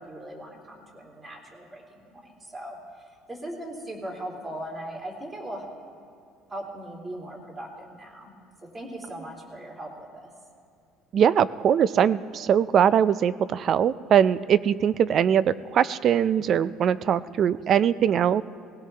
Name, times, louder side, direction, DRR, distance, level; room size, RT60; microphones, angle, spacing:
voice 1, 0.0-5.6 6.5-8.3 8.6-10.3, right 1 dB, 25° right, -2 dB, 2.9 m, -39 dB
voice 2, 11.1-18.4, right 8 dB, 45° right, 17 dB, 0.4 m, -21 dB
19.5 x 16.5 x 3.4 m, 2.4 s
cardioid pair, 120°, 0 cm